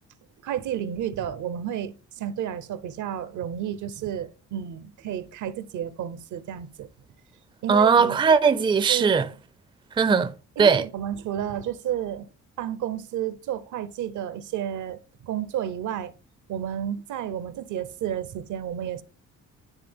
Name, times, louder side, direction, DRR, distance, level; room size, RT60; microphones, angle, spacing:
voice 1, 0.4-6.9 7.6-8.2 8.9-9.2 10.6-12.3 12.6-16.1 16.5-19.0, right 10 dB, 75° right, 0.7 m, -31 dB
voice 2, 7.7-9.3 10.0-10.3 10.6-10.8, right 5 dB, 15° right, 0.4 m, -19 dB
10.0 x 3.5 x 3.4 m
cardioid pair, 90°, 30 cm